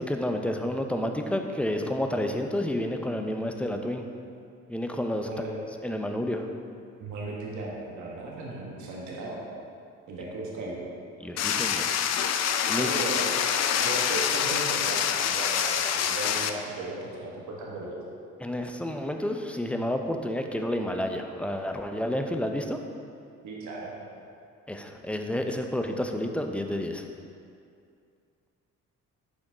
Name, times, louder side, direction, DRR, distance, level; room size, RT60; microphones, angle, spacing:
voice 1, 0.0-4.1 4.7-5.3 5.8-6.5 11.2-11.9 12.7-12.9 18.4-22.8 24.7-27.1, left 1 dB, 5° left, 4 dB, 0.5 m, -30 dB
voice 2, 7.0-9.4 10.1-10.8 12.8-13.2 13.8-18.0 23.4-23.9, right 2 dB, 75° right, -3 dB, 1.4 m, -36 dB
sound 1, 11.4-16.5, left 8 dB, 60° left, 0.5 m, -26 dB
7.0 x 5.0 x 3.8 m, 2.4 s
cardioid pair, 90°, 30 cm